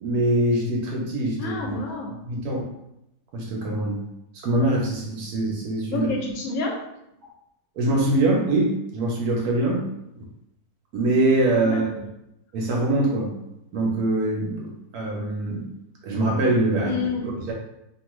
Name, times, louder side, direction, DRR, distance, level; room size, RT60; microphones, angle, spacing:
voice 1, 0.0-1.8 2.2-2.6 3.3-4.0 4.4-6.1 7.8-9.8 10.9-11.9 12.5-13.3 13.7-15.6 16.0-17.5, right 1 dB, 75° right, -1 dB, 1.1 m, -23 dB
voice 2, 1.4-2.2 5.9-6.8 11.7-11.8 16.8-17.5, left 3 dB, 70° left, 0 dB, 1.0 m, -28 dB
2.7 x 2.3 x 3.0 m, 0.84 s
omnidirectional pair, 1.7 m